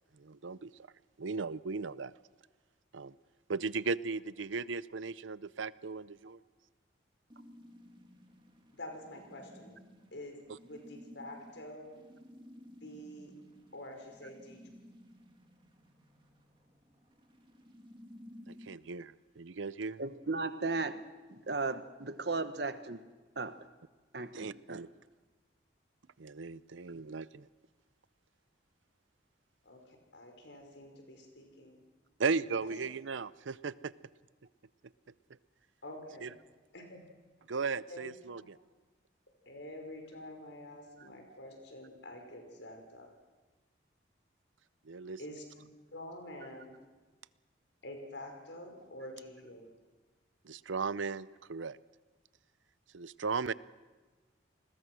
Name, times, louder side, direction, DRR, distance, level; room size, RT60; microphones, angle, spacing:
voice 1, 0.2-0.7 1.2-2.1 2.9-3.2 3.5-6.4 18.5-20.0 24.3-24.9 26.2-27.5 32.2-33.9 36.2-36.3 37.5-38.6 44.9-45.2 50.4-51.8 52.9-53.5, right 4 dB, 85° right, 18 dB, 0.6 m, -36 dB
sound 1, 7.3-18.7, equal, 25° right, 2.1 m, -56 dB
voice 2, 8.7-9.8 10.1-12.0 12.8-13.3 13.7-14.6 29.6-31.8 32.4-32.7 35.8-36.3 36.7-37.0 37.9-38.5 39.5-43.1 45.2-45.7 45.9-46.8 47.8-49.7, left 1 dB, 70° left, 3 dB, 5.6 m, -47 dB
voice 3, 20.0-21.0 21.3-23.0 23.4-23.6 24.1-24.8, right 3 dB, 60° right, 11 dB, 1.2 m, -36 dB
29.0 x 21.0 x 6.3 m, 1.3 s
head